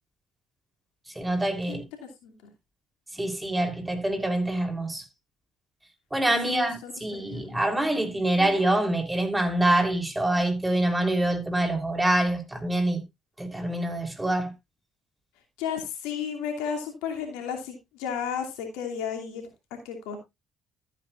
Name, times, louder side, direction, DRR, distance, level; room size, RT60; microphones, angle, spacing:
voice 1, 1.2-1.8 3.2-5.0 6.1-13.0 13.4-14.5, right 1 dB, 15° right, 3.5 m, -25 dB
voice 2, 1.7-2.3 6.4-7.6 8.4-8.5 15.6-20.2, left 7 dB, 80° left, 2.7 m, -34 dB
13.5 x 9.0 x 2.5 m
hypercardioid pair, 50°, 0 cm